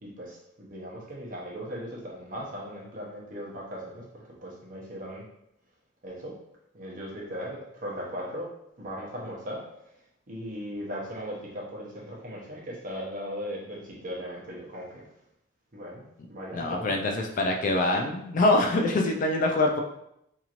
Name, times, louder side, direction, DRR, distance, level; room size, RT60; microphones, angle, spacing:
voice 1, 0.0-4.1 4.4-5.3 6.0-6.4 6.7-8.5 8.8-9.7 10.3-15.1 15.7-17.0, equal, 45° right, -4 dB, 0.8 m, -38 dB
voice 2, 16.5-19.8, left 2 dB, 40° left, 2 dB, 0.3 m, -24 dB
2.9 x 2.8 x 2.5 m, 0.78 s
head